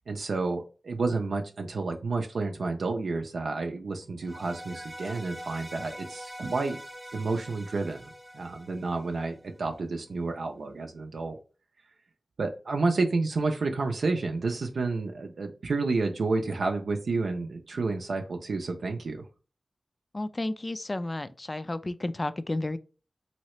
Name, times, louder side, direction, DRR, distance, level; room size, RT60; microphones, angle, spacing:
voice 1, 0.1-6.8 7.1-11.4 12.4-19.3, right 3 dB, 90° right, 0.4 m, -30 dB
sound 1, 4.2-9.5, equal, 25° right, 0.6 m, -44 dB
voice 2, 20.1-22.8, left 2 dB, 40° left, 0.4 m, -32 dB
3.1 x 2.8 x 3.0 m
cardioid pair, 40°, 0 cm